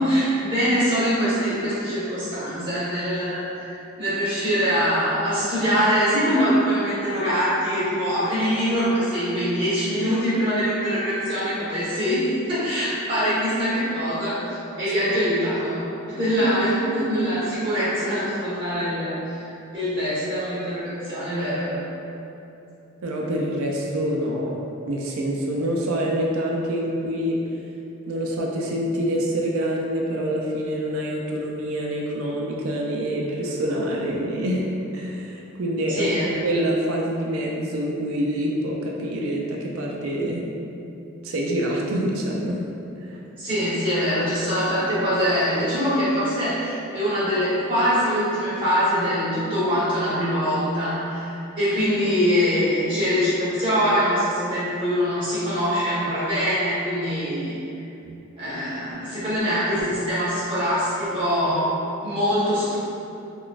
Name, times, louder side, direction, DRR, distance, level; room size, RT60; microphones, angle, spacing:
voice 1, 0.0-19.2 19.7-21.8 35.9-36.3 43.4-51.3 51.5-57.6 58.4-62.8, equal, 25° right, -12 dB, 1.2 m, -23 dB
voice 2, 23.0-24.6 24.9-27.4 28.1-34.7 34.9-40.5 41.2-42.6 43.0-43.2, equal, 75° right, -1 dB, 0.4 m, -26 dB
3.8 x 2.2 x 2.4 m, 2.8 s
head